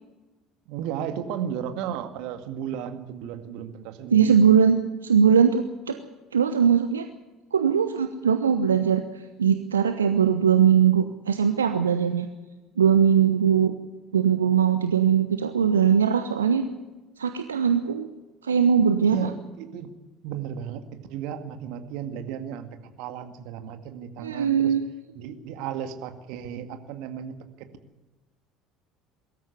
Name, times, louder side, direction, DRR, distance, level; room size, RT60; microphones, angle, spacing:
voice 1, 0.7-4.4 19.0-19.9 20.2-20.8 21.1-22.7 23.0-24.7 25.2-27.4, right 8 dB, 60° right, 8 dB, 2.0 m, -34 dB
voice 2, 4.1-6.0 6.3-7.0 7.5-12.3 12.8-13.7 14.1-16.7 17.2-18.1 18.4-19.2 24.2-24.8, right 7 dB, 80° right, 8 dB, 0.9 m, -20 dB
22.0 x 13.5 x 9.7 m, 1.2 s
figure-of-eight pair, 60°, 0 cm